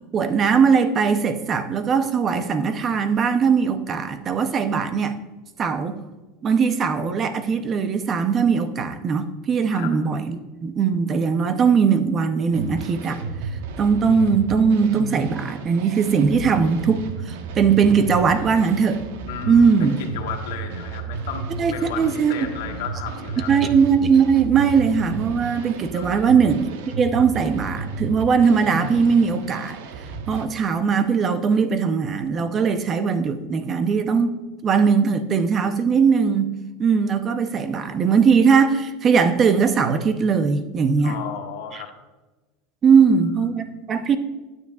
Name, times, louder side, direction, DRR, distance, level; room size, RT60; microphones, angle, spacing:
voice 1, 0.1-5.2 5.6-6.0 6.4-13.2 13.8-19.0 19.5-20.0 21.6-22.5 23.5-26.7 27.0-29.8 30.3-34.3 34.6-36.5 36.8-41.2 41.7-41.8 42.8-44.2, right 6 dB, 25° right, 10 dB, 0.7 m, -20 dB
sound 1, 12.5-30.5, right 4 dB, 75° right, 1.0 m, -33 dB
voice 2, 19.3-21.5 21.7-23.7 25.9-26.3 41.0-41.9, left 8 dB, 80° left, 2 dB, 1.1 m, -34 dB
12.0 x 9.3 x 2.4 m, 1.2 s
supercardioid pair, 150°, 0 cm